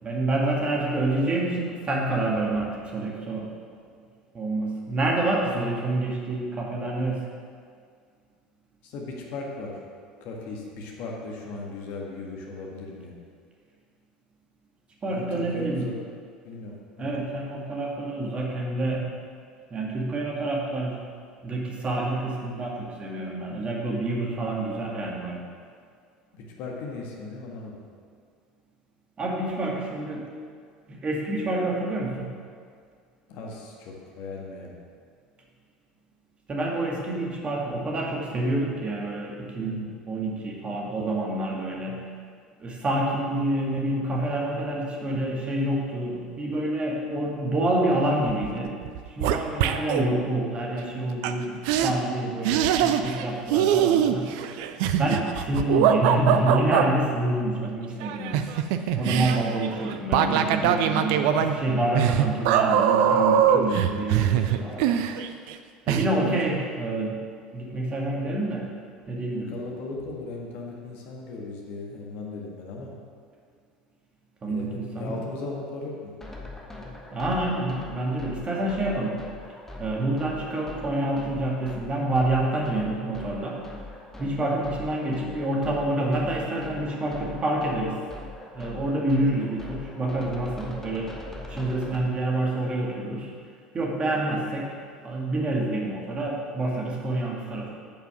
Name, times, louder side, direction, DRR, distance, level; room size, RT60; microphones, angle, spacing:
voice 1, 0.0-3.5 4.3-7.2 15.0-15.9 17.0-19.1 19.7-21.0 21.4-25.4 29.2-30.3 30.9-32.3 36.5-42.0 42.6-48.7 49.1-54.4 55.0-58.4 59.0-64.8 65.9-67.2 67.5-68.7 69.1-69.6 74.4-75.2 77.1-79.1 79.8-83.6 84.2-88.0 88.5-91.2 91.4-93.3 93.7-94.7 95.0-97.7, right 1 dB, 25° right, -2 dB, 1.8 m, -27 dB
voice 2, 8.8-9.8 10.2-13.1 15.1-16.0 16.4-17.1 26.3-27.8 33.3-34.7 66.0-66.4 69.3-72.9 74.4-76.1, left 3 dB, 50° left, -1 dB, 1.7 m, -37 dB
sound 1, 48.3-48.6 48.8-50.1 51.2-51.3 51.7-51.9 52.4-53.3 53.5-56.9 58.0-65.5 65.9-66.1, right 9 dB, 55° right, 0.5 m, -22 dB
sound 2, 76.2-92.1, left 2 dB, 10° left, 1.3 m, -42 dB
9.0 x 5.8 x 6.1 m, 2.1 s
figure-of-eight pair, 70°, 4 cm